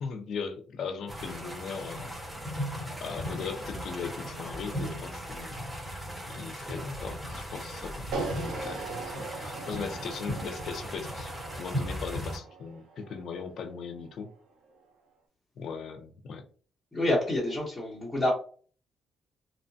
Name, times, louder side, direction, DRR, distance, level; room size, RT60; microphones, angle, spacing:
voice 1, 0.0-2.1 3.0-5.5 6.3-11.3 11.6-14.3 15.6-16.4, left 5 dB, 65° left, 7 dB, 0.5 m, -38 dB
sound 1, 1.1-12.4, equal, 10° right, 1.2 m, -37 dB
sound 2, 8.1-14.3, right 4 dB, 90° right, 0.6 m, -40 dB
voice 2, 16.9-18.3, left 1 dB, 10° left, -7 dB, 1.0 m, -27 dB
2.8 x 2.1 x 2.6 m, 0.42 s
cardioid pair, 90°, 0 cm